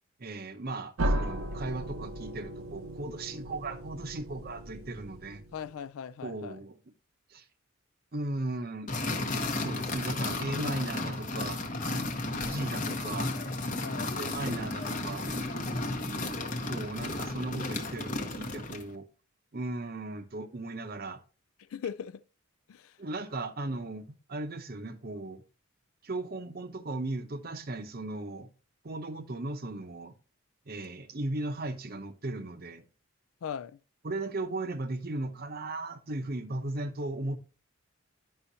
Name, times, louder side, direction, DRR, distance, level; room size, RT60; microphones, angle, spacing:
voice 1, 0.2-5.4 6.2-6.8 7.3-7.4 8.1-8.9 9.5-11.6 11.9-12.0 12.4-13.3 14.1-15.3 16.7-19.1 19.5-21.2 23.0-25.4 26.0-28.5 28.8-30.1 30.7-32.8 34.0-37.4, right 2 dB, 45° right, 0.7 m, -37 dB
sound 1, 1.0-5.7, right 1 dB, 80° right, 0.8 m, -35 dB
voice 2, 5.5-6.6 10.6-10.8 13.8-14.2 21.7-22.2 22.7-22.9 33.4-33.8, left 8 dB, 70° left, 0.3 m, -39 dB
sound 2, 8.9-18.9, left 2 dB, 35° left, 0.9 m, -33 dB
9.9 x 5.5 x 2.7 m
head